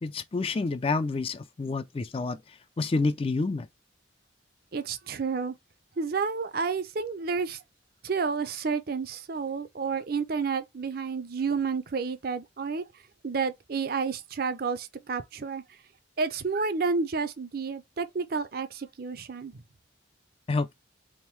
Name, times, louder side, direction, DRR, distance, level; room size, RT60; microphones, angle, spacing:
voice 1, 0.0-2.4 2.8-3.7 20.5-20.7, left 3 dB, 30° left, 0.3 m, -28 dB
voice 2, 4.7-5.5 6.0-7.6 8.0-12.8 13.2-15.6 16.2-19.5, right 5 dB, 50° right, 0.5 m, -30 dB
3.6 x 2.6 x 4.5 m
head